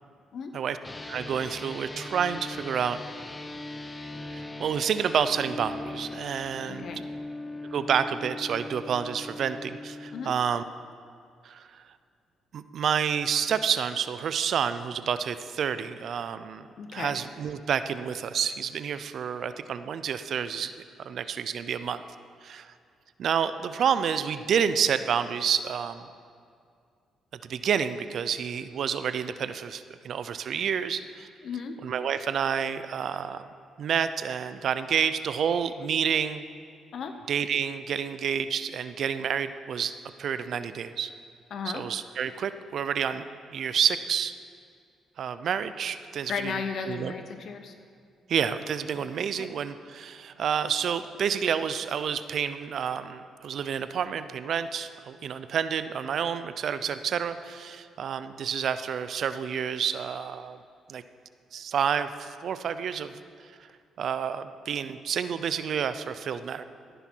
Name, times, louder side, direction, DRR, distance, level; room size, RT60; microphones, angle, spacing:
sound 1, 0.8-10.3, left 2 dB, 20° left, 0.9 m, -40 dB
voice 1, 1.1-3.0 4.3-6.9 7.7-10.6 11.4-11.8 12.5-16.7 16.9-20.7 21.0-22.0 22.4-22.7 23.2-26.1 27.5-31.3 31.8-33.4 33.8-36.4 37.3-39.9 40.2-41.1 41.7-43.2 43.5-44.3 45.2-46.5 46.9-47.1 48.3-60.6 60.9-61.0 61.5-63.2 64.0-66.6, right 7 dB, 60° right, 12 dB, 0.6 m, -29 dB
voice 2, 6.7-7.0 10.1-10.3 16.8-17.1 31.4-31.8 36.9-37.1 41.5-41.8 46.3-47.7 49.4-49.5, left 6 dB, 60° left, 7 dB, 0.8 m, -34 dB
16.5 x 10.0 x 4.6 m, 2.3 s
cardioid pair, 90°, 0 cm